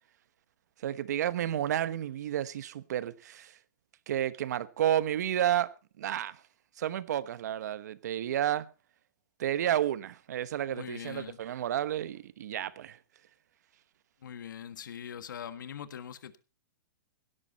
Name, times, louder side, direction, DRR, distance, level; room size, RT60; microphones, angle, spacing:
voice 1, 0.8-3.5 4.1-5.7 6.0-6.4 6.8-8.7 9.4-13.0, right 11 dB, 60° right, 1.2 m, -31 dB
voice 2, 10.7-11.4 14.2-16.4, left 8 dB, 85° left, 1.6 m, -42 dB
17.0 x 13.0 x 4.2 m
hypercardioid pair, 170°, 10 cm